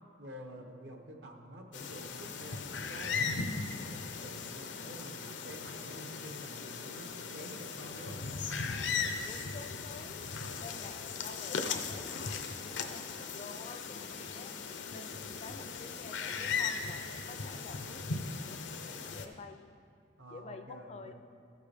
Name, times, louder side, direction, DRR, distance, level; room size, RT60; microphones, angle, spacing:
voice 1, 0.2-3.4 3.9-8.2 10.2-10.8 20.2-21.1, equal, 70° right, 3 dB, 0.9 m, -49 dB
sound 1, 1.7-19.3, left 5 dB, 85° left, 0.6 m, -38 dB
voice 2, 9.2-10.2 10.6-19.7 20.3-21.1, left 4 dB, 35° left, 7 dB, 0.4 m, -49 dB
13.5 x 6.7 x 3.4 m, 2.4 s
head